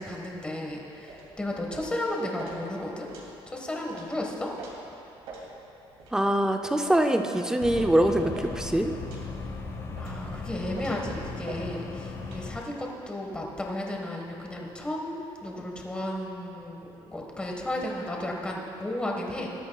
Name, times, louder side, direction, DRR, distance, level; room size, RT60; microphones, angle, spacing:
voice 1, 0.0-3.1 3.5-4.5 10.0-15.1 15.4-19.5, left 1 dB, 10° left, -1 dB, 1.5 m, -33 dB
sound 1, 1.1-1.3 1.7-2.0 2.4-2.6 3.1-3.3 3.9-4.1 4.6-4.7 5.3-5.5 6.0-6.1 6.8-7.1 7.6-7.9 8.3-8.5 9.1-9.3 10.0-10.2 10.7-11.0 11.4-11.6 12.2-12.4, right 4 dB, 80° right, 2.7 m, -44 dB
voice 2, 6.1-8.9, right 1 dB, 5° right, 5 dB, 0.6 m, -24 dB
sound 2, 7.6-12.6, left 3 dB, 25° left, 1.0 m, -37 dB
19.0 x 12.5 x 2.4 m, 2.8 s
cardioid pair, 155°, 10 cm